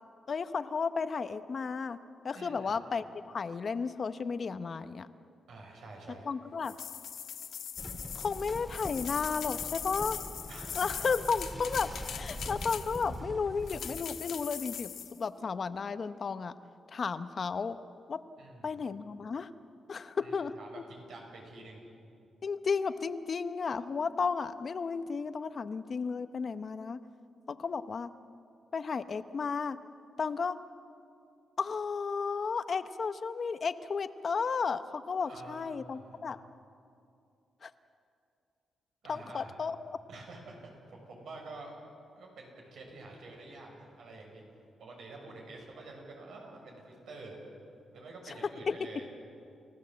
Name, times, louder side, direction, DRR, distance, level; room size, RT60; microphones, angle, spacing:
voice 1, 0.3-2.0 2.2-5.1 6.3-6.8 8.1-10.2 10.7-16.5 16.9-17.8 18.1-18.2 18.6-19.5 19.9-20.5 22.4-27.0 27.5-28.1 28.7-29.8 30.2-30.6 31.6-36.4 37.6-37.7 39.1-39.8 48.7-48.8, left 5 dB, 45° left, 11 dB, 0.8 m, -33 dB
voice 2, 2.3-2.8 5.5-6.3 10.5-10.9 18.4-18.8 20.2-21.8 35.2-36.2 39.0-39.6 40.1-41.7 42.2-44.4 44.8-47.4 47.9-49.1, right 2 dB, 80° right, 0 dB, 6.3 m, -48 dB
children's rattle, 6.6-13.2 13.7-15.2, left 8 dB, 75° left, 1.2 m, -41 dB
sound 1, 7.8-14.0, equal, 5° right, 1.9 m, -43 dB
30.0 x 15.5 x 7.7 m, 2.6 s
cardioid pair, 105°, 0 cm